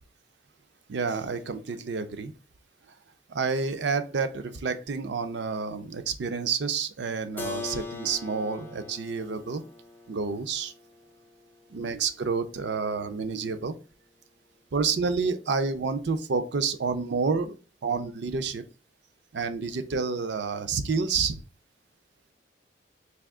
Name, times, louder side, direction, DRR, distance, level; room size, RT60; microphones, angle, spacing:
voice 1, 0.9-2.3 3.3-9.6 10.1-10.7 11.7-13.8 14.7-18.6 19.3-21.4, right 4 dB, 65° right, 10 dB, 0.5 m, -29 dB
Keyboard (musical), 7.4-13.0, left 3 dB, 10° left, 0.4 m, -42 dB
3.4 x 2.7 x 3.6 m, 0.35 s
head